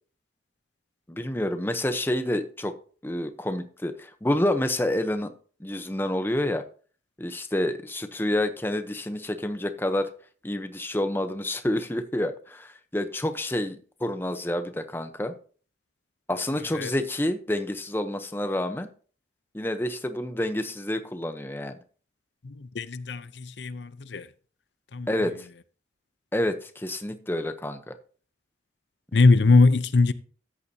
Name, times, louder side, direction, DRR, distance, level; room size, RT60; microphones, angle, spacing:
voice 1, 1.1-2.8 3.0-5.3 5.6-6.6 7.2-10.1 10.4-15.3 16.3-18.9 19.5-21.8 25.1-25.5 26.3-27.9, left 1 dB, 10° left, 0.8 m, -28 dB
voice 2, 22.4-24.3 24.9-25.3 29.1-30.1, left 3 dB, 80° left, 0.6 m, -21 dB
13.5 x 9.8 x 2.8 m
head